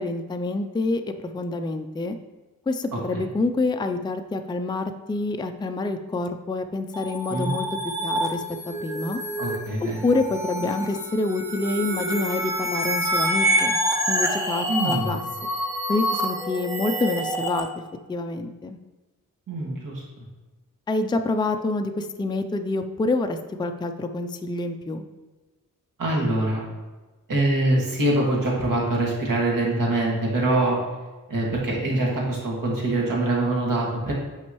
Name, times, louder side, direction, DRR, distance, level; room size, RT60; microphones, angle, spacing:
voice 1, 0.0-2.2 2.7-9.2 9.8-13.8 14.1-15.2 15.9-17.7 18.1-18.8 20.9-25.1, left 2 dB, 15° left, 6 dB, 0.4 m, -27 dB
sound 1, 6.9-17.6, equal, 10° right, 0.9 m, -27 dB
voice 2, 9.4-10.0 14.7-15.1 19.5-20.0 26.0-26.6 27.3-30.8 31.3-34.1, right 2 dB, 80° right, -3 dB, 2.0 m, -24 dB
8.7 x 5.3 x 3.1 m, 1.2 s
wide cardioid pair, 135°, 32 cm